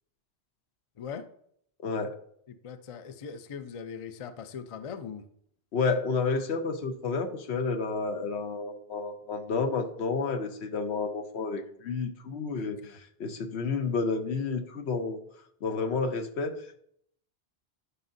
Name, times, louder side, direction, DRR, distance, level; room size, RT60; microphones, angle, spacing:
voice 1, 1.0-1.3 2.5-5.3 12.6-13.0, left 6 dB, 45° left, 11 dB, 0.4 m, -41 dB
voice 2, 1.8-2.2 5.7-15.2 15.6-16.8, left 4 dB, 80° left, 7 dB, 1.1 m, -30 dB
11.0 x 5.0 x 2.6 m, 0.67 s
omnidirectional pair, 1.1 m